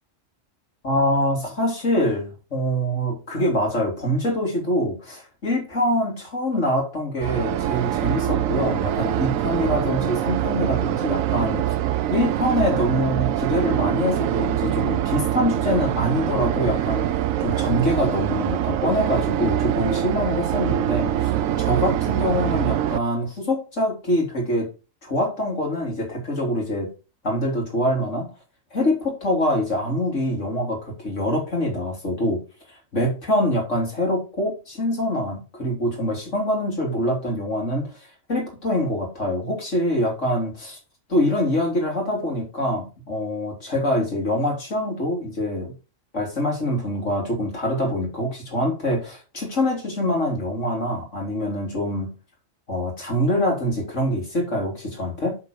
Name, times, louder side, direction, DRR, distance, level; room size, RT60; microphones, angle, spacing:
voice 1, 0.8-11.6 12.1-21.3 21.6-24.7 25.0-26.9 27.2-28.3 28.7-32.4 32.9-40.8 41.1-45.7 46.1-52.1 52.7-55.4, left 1 dB, 65° left, 0 dB, 3.8 m, -24 dB
sound 1, 7.2-23.0, right 11 dB, 85° right, 1.1 m, -24 dB
7.5 x 7.2 x 4.7 m, 0.31 s
omnidirectional pair, 1.4 m